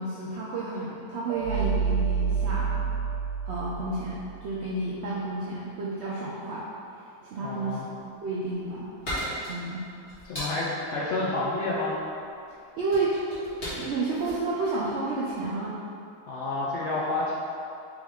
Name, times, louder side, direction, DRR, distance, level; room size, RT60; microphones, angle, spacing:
voice 1, 0.0-2.8 3.5-6.7 7.0-7.8 8.2-8.9 9.5-9.9 12.8-13.2 13.8-15.8, right 2 dB, 75° right, -6 dB, 0.6 m, -31 dB
sound 1, 1.3-4.5, right 6 dB, 45° right, 1.3 m, -28 dB
voice 2, 7.4-7.9 10.3-11.9 16.3-17.3, left 2 dB, 70° left, -6 dB, 0.7 m, -29 dB
sound 2, 8.2-15.6, equal, 40° left, 1.6 m, -38 dB
3.6 x 3.1 x 3.5 m, 2.6 s
omnidirectional pair, 1.6 m